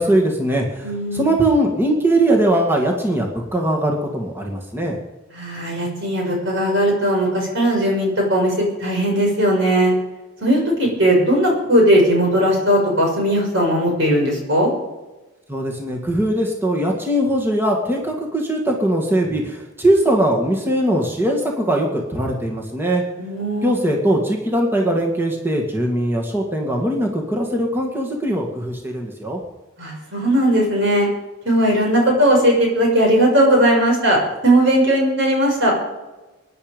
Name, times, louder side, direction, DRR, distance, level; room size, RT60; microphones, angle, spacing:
voice 1, 0.0-5.0 15.5-23.0 23.6-29.4, right 1 dB, 10° right, 0 dB, 2.0 m, -20 dB
voice 2, 0.8-1.3 5.3-9.9 10.4-14.7 23.2-23.7 29.8-31.1 31.4-35.7, right 1 dB, 55° right, 0 dB, 6.2 m, -18 dB
23.5 x 10.5 x 5.3 m, 1.1 s
head